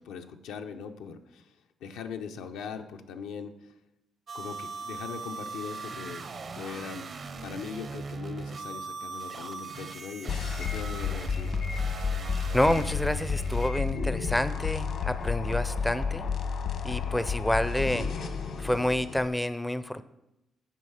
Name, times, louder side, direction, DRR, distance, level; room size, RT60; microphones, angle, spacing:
voice 1, 0.0-1.5 1.8-3.7 4.3-6.3 6.5-7.1 7.4-11.5, left 6 dB, 90° left, 6 dB, 0.6 m, -40 dB
sound 1, 4.3-13.7, right 4 dB, 50° right, 0.6 m, -39 dB
sound 2, 10.3-19.3, left 6 dB, 65° left, 1.0 m, -31 dB
voice 2, 12.5-16.3 16.8-18.1 18.6-20.0, left 1 dB, 5° left, 13 dB, 0.4 m, -28 dB
8.2 x 4.7 x 5.6 m, 0.89 s
cardioid pair, 90°, 0 cm